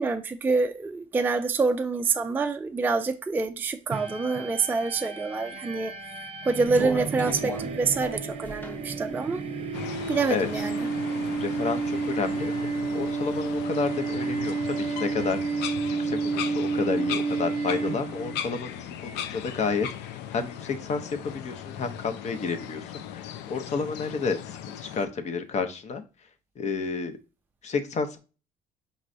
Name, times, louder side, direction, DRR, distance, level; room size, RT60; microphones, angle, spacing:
voice 1, 0.0-5.9 6.4-9.4 10.1-10.9, right 4 dB, 10° right, 0.3 m, -26 dB
sound 1, 3.9-18.4, right 4 dB, 35° right, 0.7 m, -31 dB
sound 2, 6.6-10.6 11.0-12.0 12.4-13.4, equal, 10° left, 0.8 m, -39 dB
sound 3, 9.7-25.1, left 10 dB, 85° left, 0.4 m, -38 dB
voice 2, 11.4-12.5 12.9-15.4 16.0-22.8 23.1-26.0 26.6-27.2 27.6-28.2, left 5 dB, 40° left, 0.7 m, -30 dB
5.3 x 3.0 x 2.6 m
cardioid pair, 110°, 17 cm